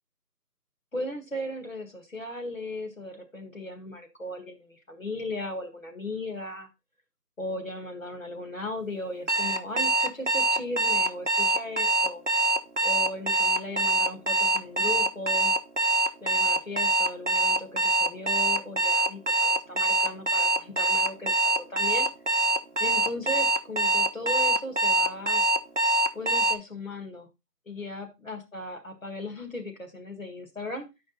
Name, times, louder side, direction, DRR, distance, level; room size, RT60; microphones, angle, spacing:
voice 1, 0.9-6.7 7.4-12.2 12.8-15.5 16.2-22.1 22.8-25.4 26.1-27.3 27.7-30.9, left 1 dB, 55° left, 4 dB, 1.8 m, -37 dB
Alarm, 9.3-26.6, right 2 dB, 50° right, 0.6 m, -24 dB
8.5 x 5.2 x 3.9 m, 0.24 s
figure-of-eight pair, 170°, 48 cm